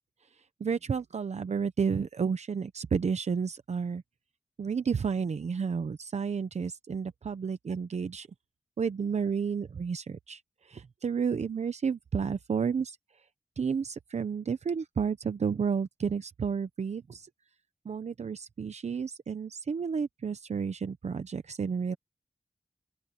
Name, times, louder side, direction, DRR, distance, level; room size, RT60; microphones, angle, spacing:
voice 1, 0.6-4.0 4.6-8.3 8.8-13.0 13.6-17.3 17.8-22.0, right 6 dB, 75° right, 0.8 m, -31 dB
open air
wide cardioid pair, 105°, 12 cm